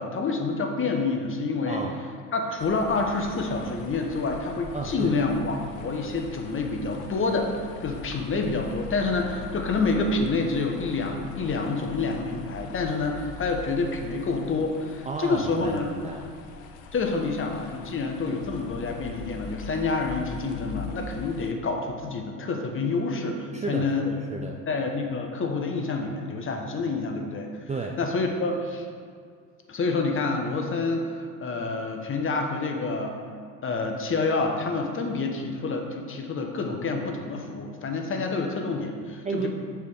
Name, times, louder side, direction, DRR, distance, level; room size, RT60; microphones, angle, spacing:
voice 1, 0.0-1.8 2.3-7.5 7.8-15.9 16.9-24.1 24.7-27.5 28.0-28.9 29.7-33.2 33.6-39.5, left 3 dB, 30° left, 3 dB, 1.1 m, -28 dB
sound 1, 2.6-21.5, left 5 dB, 70° left, 0.8 m, -42 dB
voice 2, 4.7-5.1 15.1-16.3 23.5-24.6 27.7-28.0 39.2-39.5, right 4 dB, 15° right, 1 dB, 0.4 m, -32 dB
6.7 x 4.6 x 4.9 m, 2.1 s
hypercardioid pair, 75°, 42 cm